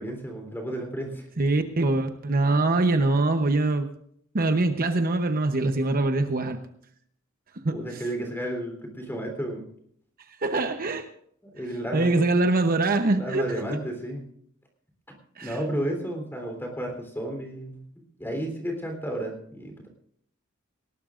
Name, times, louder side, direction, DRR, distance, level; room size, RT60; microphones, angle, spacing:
voice 1, 0.0-1.3 7.7-9.7 11.5-12.3 13.2-14.3 15.4-17.9 18.2-19.9, right 1 dB, 10° left, 3 dB, 3.5 m, -32 dB
voice 2, 1.4-3.9 4.3-6.6 7.6-8.0 10.4-11.1 11.9-13.8 15.4-15.6, right 2 dB, 45° right, 7 dB, 0.9 m, -23 dB
19.5 x 18.0 x 2.5 m, 0.67 s
head